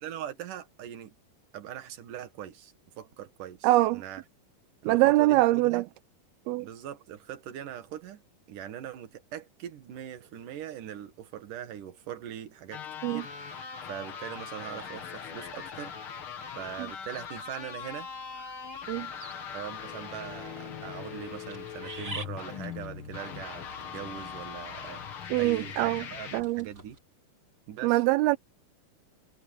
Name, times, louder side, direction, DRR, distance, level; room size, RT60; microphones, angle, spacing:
voice 1, 0.0-1.1 1.5-4.2 4.8-5.8 6.6-8.2 8.5-16.0 16.5-18.1 19.5-25.0 25.4-27.0 27.7-28.0, right 10 dB, 60° right, 3.1 m, -41 dB
voice 2, 3.6-4.0 4.8-5.8 6.5-6.7 13.0-13.2 18.9-19.1 25.3-26.1 26.3-26.7 27.8-28.4, right 19 dB, 85° right, 2.5 m, -23 dB
sound 1, 12.7-26.4, left 7 dB, 50° left, 1.8 m, -40 dB
sound 2, 14.8-27.0, right 2 dB, 25° right, 3.8 m, -50 dB
omnidirectional pair, 4.4 m